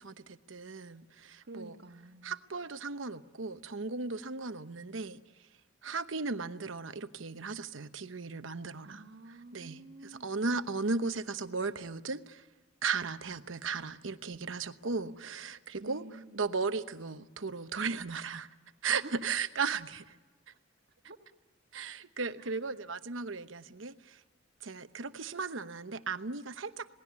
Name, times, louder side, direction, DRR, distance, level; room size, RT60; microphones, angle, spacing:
voice 1, 0.0-1.7 2.2-5.2 5.8-9.0 9.5-12.4 12.8-16.0 16.3-18.5 18.8-20.2 20.5-20.6 21.7-24.2 24.6-26.9, right 4 dB, 75° right, 1.0 m, -36 dB
voice 2, 1.4-2.4 8.8-10.3 15.8-16.4 19.0-19.1 21.0-21.2 22.4-22.5, right 2 dB, 55° right, 1.7 m, -49 dB
27.5 x 19.0 x 9.5 m
head